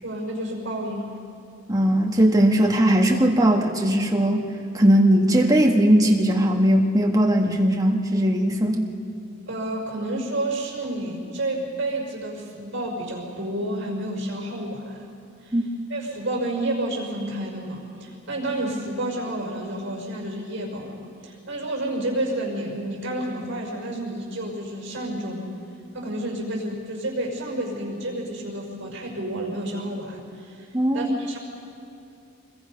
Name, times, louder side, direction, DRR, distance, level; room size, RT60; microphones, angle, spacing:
voice 1, 0.0-1.2 9.5-15.0 15.4-15.5 15.9-25.5 25.9-30.7 30.9-31.4, right 1 dB, 60° right, 0 dB, 5.4 m, -30 dB
voice 2, 1.7-4.4 4.7-8.9 15.5-15.6 30.7-31.2, right 1 dB, 20° right, 0 dB, 1.8 m, -19 dB
26.0 x 22.0 x 5.5 m, 2.6 s
head